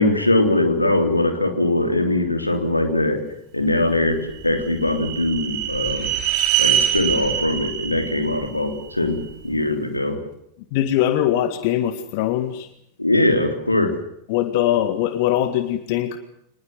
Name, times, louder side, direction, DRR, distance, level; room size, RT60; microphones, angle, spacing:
voice 1, 0.0-3.2 3.5-6.1 6.6-10.2 13.0-13.9, left 2 dB, 85° left, 7 dB, 3.5 m, -21 dB
sound 1, 4.1-9.3, right 10 dB, 40° right, 3.1 m, -24 dB
voice 2, 10.7-12.7 14.3-16.2, left 12 dB, 45° left, 11 dB, 1.8 m, -21 dB
25.0 x 20.0 x 7.7 m, 0.76 s
figure-of-eight pair, 90°, 0 cm